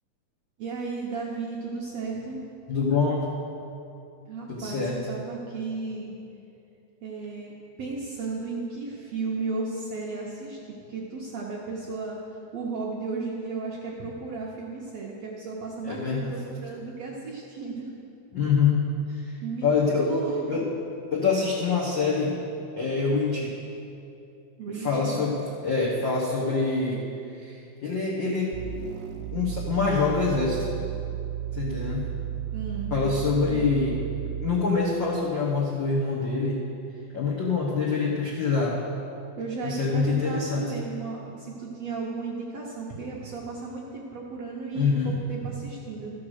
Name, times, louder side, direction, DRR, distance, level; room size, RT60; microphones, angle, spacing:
voice 1, 0.6-2.4 4.3-6.1 7.0-7.5 7.8-10.6 10.9-12.2 12.5-17.9 19.4-19.7 20.0-20.6 24.6-25.2 32.5-32.9 33.5-33.6 39.4-46.1, right 4 dB, 70° right, -4 dB, 1.6 m, -34 dB
voice 2, 2.7-3.3 4.5-5.0 15.8-16.3 18.3-18.8 19.1-20.1 20.5-20.7 21.1-22.3 22.8-23.5 24.8-25.4 25.6-27.0 27.3-28.5 29.3-30.7 31.5-32.0 32.9-34.0 34.4-36.6 37.1-38.8 39.6-40.7 44.7-45.1, left 4 dB, 80° left, -6 dB, 1.0 m, -25 dB
sound 1, 28.5-34.7, right 12 dB, 85° right, 1.7 m, -33 dB
13.5 x 5.8 x 6.4 m, 2.7 s
omnidirectional pair, 4.2 m